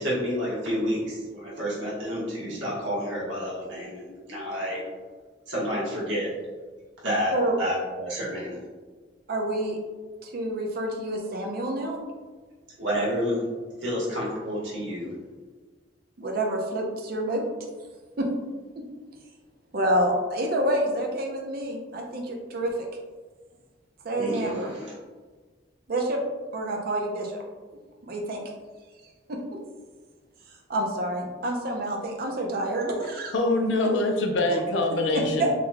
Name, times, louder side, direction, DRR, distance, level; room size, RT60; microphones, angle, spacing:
voice 1, 0.0-4.8 5.5-6.3 7.0-8.6 12.8-13.4 13.8-15.1 24.1-24.9, equal, 80° right, -6 dB, 1.2 m, -29 dB
voice 2, 9.3-9.8 10.2-12.0 16.2-17.4 18.2-18.3 18.8-18.9 19.7-22.7 24.0-24.7 25.9-26.2 26.5-27.4 28.0-28.4 29.3-29.4 30.7-33.3 35.4-35.5, right 1 dB, 55° right, 1 dB, 0.5 m, -28 dB
voice 3, 33.3-35.5, left 2 dB, 75° left, 2 dB, 0.5 m, -24 dB
3.7 x 2.9 x 2.2 m, 1.4 s
head